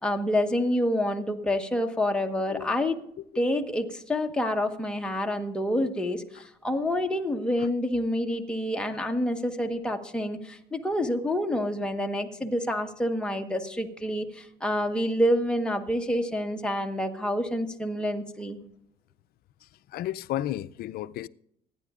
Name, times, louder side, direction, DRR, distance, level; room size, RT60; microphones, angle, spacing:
voice 1, 0.0-3.0 3.4-18.6, left 1 dB, 5° left, 1.2 m, -28 dB
voice 2, 19.6-21.3, left 13 dB, 65° left, 0.5 m, -33 dB
25.5 x 9.9 x 2.4 m
cardioid pair, 110°, 17 cm